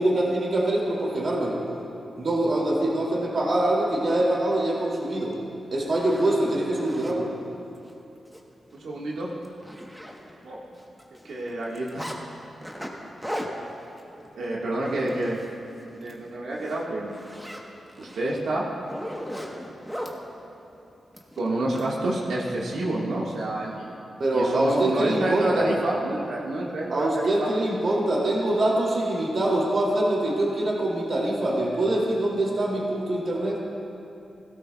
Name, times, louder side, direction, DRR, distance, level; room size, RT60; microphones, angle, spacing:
voice 1, 0.0-1.6 2.2-5.3 5.7-7.3 24.2-25.7 26.9-33.6, right 1 dB, 45° right, -3 dB, 2.5 m, -24 dB
Zipper (clothing), 5.3-5.4 5.9-7.2 7.8-7.9 8.3-8.4 8.7-8.9 9.2-10.5 10.8-12.2 12.6-15.6 15.9-16.2 16.5-20.2 21.1-21.9, equal, 5° right, 1.0 m, -38 dB
voice 2, 8.7-9.3 10.4-10.6 11.2-12.1 14.4-15.5 15.9-17.2 18.0-18.7 21.4-23.9 24.3-27.5, right 1 dB, 90° right, -5 dB, 1.5 m, -28 dB
17.0 x 16.5 x 2.3 m, 2.8 s
wide cardioid pair, 155°, 0 cm